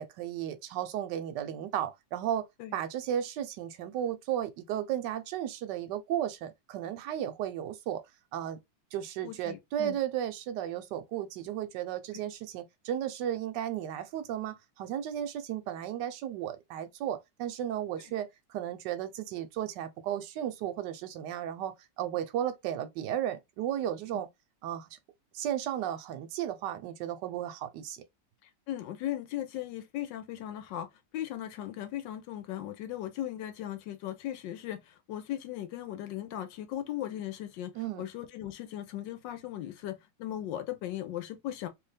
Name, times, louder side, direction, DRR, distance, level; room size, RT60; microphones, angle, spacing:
voice 1, 0.0-2.5 2.7-8.0 8.3-8.6 8.9-24.3 24.6-24.9 25.3-28.0 37.7-38.0, right 11 dB, 75° right, 1.2 m, -34 dB
voice 2, 9.2-10.0 28.7-30.9 31.1-37.7 38.0-41.7, left 12 dB, 75° left, 1.3 m, -37 dB
3.3 x 2.8 x 3.3 m
omnidirectional pair, 2.0 m